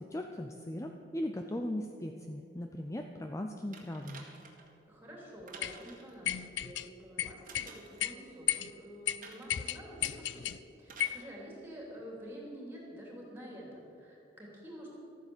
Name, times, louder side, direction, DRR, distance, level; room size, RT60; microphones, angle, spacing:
voice 1, 0.0-4.3, left 1 dB, 15° left, 4 dB, 0.5 m, -38 dB
sound 1, 3.7-4.7 5.5-6.2 7.4-8.0 9.2-9.6 10.8-11.2 12.3-12.4, right 4 dB, 45° right, 1.8 m, -52 dB
voice 2, 4.9-10.5 10.8-15.0, equal, 10° right, -3 dB, 3.2 m, -48 dB
sound 2, 5.6-5.8 6.2-6.9 7.2-7.7 8.0-8.1 8.5-8.7 9.1-9.2 9.5-10.6 11.0-11.2, left 11 dB, 80° left, 0.5 m, -33 dB
13.0 x 9.4 x 7.2 m, 2.9 s
head